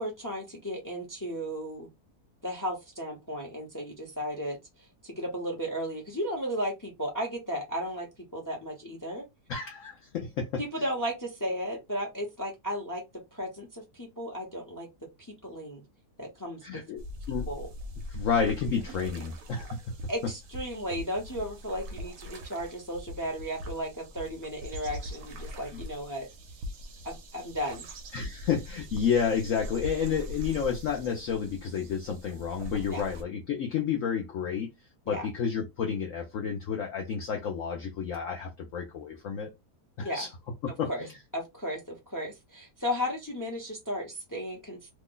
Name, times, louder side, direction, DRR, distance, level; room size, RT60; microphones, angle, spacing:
voice 1, 0.0-1.9 2.4-4.6 5.0-8.1 8.3-9.2 10.6-13.0 13.3-14.9 15.4-15.8 16.2-16.6 17.5-17.7 20.1-26.3 27.0-27.9 32.9-33.1 35.1-35.3 40.0-40.3 40.9-41.1 41.3-44.9, equal, 20° left, 0.6 m, -34 dB
voice 2, 9.5-10.6 16.6-17.0 17.3-17.5 18.1-20.0 28.1-34.7 35.1-39.5 40.0-40.3 40.6-40.9, left 7 dB, 65° left, 0.9 m, -30 dB
sound 1, 17.0-33.2, equal, 70° right, 1.2 m, -42 dB
3.0 x 2.2 x 3.7 m
omnidirectional pair, 1.8 m